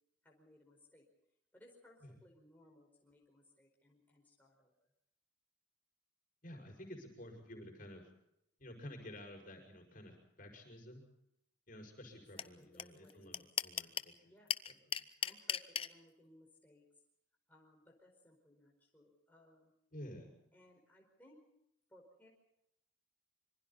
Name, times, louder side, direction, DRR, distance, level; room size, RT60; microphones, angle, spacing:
voice 1, 0.2-1.0 1.5-4.7 12.1-13.5 14.2-14.5 15.2-16.9 17.5-19.7 20.5-21.4 21.9-22.3, left 1 dB, 10° left, -1 dB, 4.7 m, -64 dB
voice 2, 6.4-8.0 8.6-11.0 11.7-14.1 19.9-20.4, left 1 dB, 45° left, 2 dB, 5.7 m, -51 dB
sound 1, 12.4-12.5 12.8-12.9 13.1-14.1 14.5-15.9, left 8 dB, 30° left, 0.7 m, -35 dB
26.5 x 24.5 x 4.1 m, 0.81 s
head